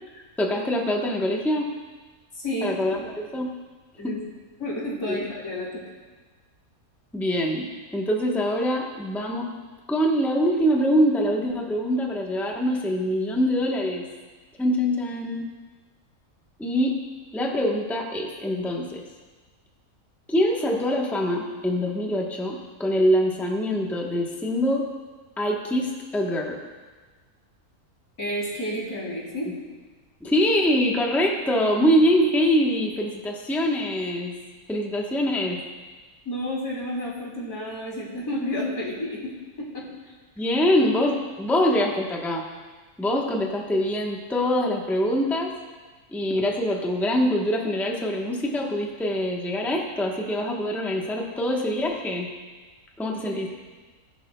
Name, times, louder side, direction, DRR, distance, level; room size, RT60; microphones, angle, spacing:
voice 1, 0.4-1.7 2.6-3.5 4.0-4.1 5.1-5.2 7.1-9.5 9.9-14.1 14.6-15.5 16.6-17.0 17.3-19.0 20.3-24.9 25.4-26.6 30.2-34.3 34.7-35.6 40.4-42.4 43.0-45.5 46.1-52.3 53.0-53.5, equal, ahead, -1 dB, 0.9 m, -24 dB
voice 2, 2.3-3.0 4.0-4.2 4.6-5.8 28.2-29.5 36.3-39.3 39.6-39.9 53.3-53.5, left 1 dB, 80° left, -5 dB, 3.8 m, -31 dB
19.5 x 11.0 x 2.3 m, 1.3 s
omnidirectional pair, 1.6 m